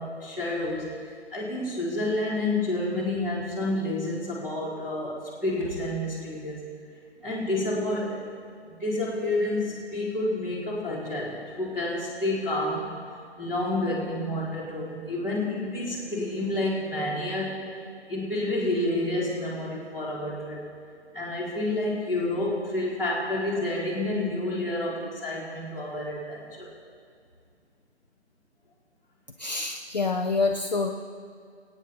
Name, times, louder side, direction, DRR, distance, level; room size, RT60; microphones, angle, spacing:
voice 1, 0.0-6.7 7.2-8.2 8.7-12.9 13.4-20.6 21.1-26.7, left 1 dB, 10° right, -11 dB, 2.0 m, -29 dB
voice 2, 29.4-30.9, left 3 dB, 40° left, 3 dB, 0.6 m, -26 dB
24.5 x 9.0 x 4.3 m, 2.2 s
figure-of-eight pair, 155°, 34 cm